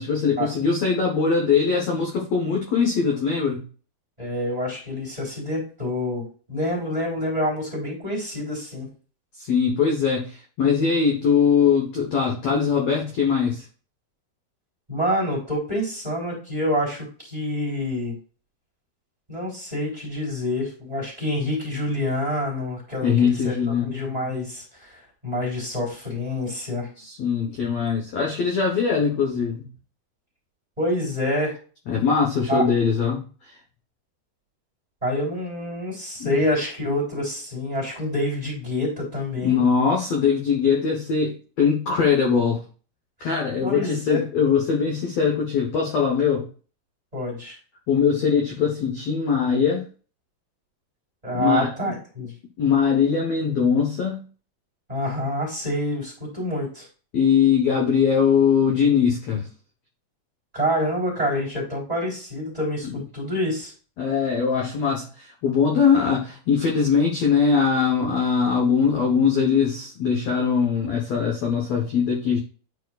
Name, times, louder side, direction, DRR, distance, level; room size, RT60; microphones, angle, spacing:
voice 1, 0.0-3.6 9.4-13.6 23.0-23.9 27.0-29.7 31.9-33.6 36.2-36.4 39.4-42.6 43.2-46.5 47.9-49.9 51.3-51.7 52.6-54.2 57.1-59.5 62.8-63.0 64.0-72.4, left 6 dB, 70° left, 1.6 m, -21 dB
voice 2, 4.2-8.9 14.9-18.1 19.3-26.9 30.8-31.6 32.5-32.6 35.0-39.6 43.6-44.3 47.1-47.5 51.2-52.3 54.9-56.9 60.5-63.7, left 1 dB, 10° right, 3.1 m, -27 dB
11.0 x 4.8 x 2.4 m
omnidirectional pair, 4.7 m